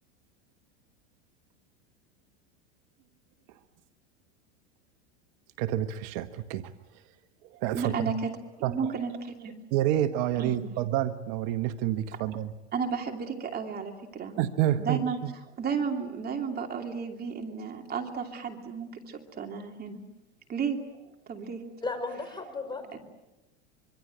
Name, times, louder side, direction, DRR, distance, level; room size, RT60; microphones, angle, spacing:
voice 1, 5.6-6.7 7.5-7.9 8.6-8.9 9.7-12.5 14.4-15.3, right 12 dB, 55° right, 9 dB, 1.3 m, -28 dB
voice 2, 7.7-8.3 8.6-9.6 10.4-10.7 12.1-12.2 12.7-14.4 14.8-15.2 15.6-20.0 20.5-20.8 21.3-21.6 22.9-23.0, right 6 dB, 30° right, 4 dB, 2.9 m, -33 dB
voice 3, 21.8-23.0, left 3 dB, 15° left, 8 dB, 5.0 m, -35 dB
25.5 x 24.0 x 7.9 m, 1.0 s
supercardioid pair, 125°, 33 cm